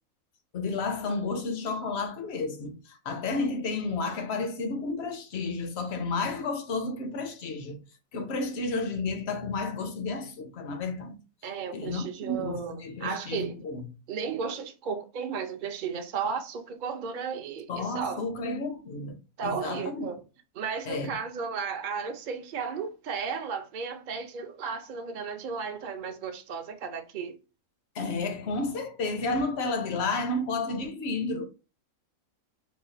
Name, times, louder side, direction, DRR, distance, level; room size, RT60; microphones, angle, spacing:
voice 1, 0.5-7.8 8.1-11.2 11.7-13.9 17.7-19.2 19.4-20.1 20.9-21.2 27.9-31.4, left 3 dB, 60° left, 0.8 m, -31 dB
voice 2, 11.4-13.6 14.1-18.2 19.4-20.2 20.5-27.4, right 6 dB, 55° right, 0.6 m, -34 dB
4.0 x 2.2 x 3.8 m
omnidirectional pair, 1.5 m